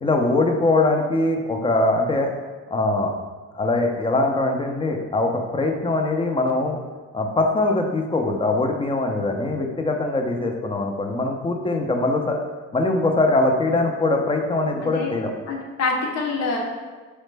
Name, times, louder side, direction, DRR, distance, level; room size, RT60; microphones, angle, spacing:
voice 1, 0.0-2.3 2.7-3.1 3.5-6.8 7.1-12.4 12.7-15.3, left 2 dB, 20° left, 3 dB, 0.4 m, -22 dB
voice 2, 14.8-15.2 15.5-16.6, left 4 dB, 60° left, -1 dB, 0.7 m, -26 dB
4.9 x 2.1 x 3.2 m, 1.4 s
cardioid pair, 90°, 30 cm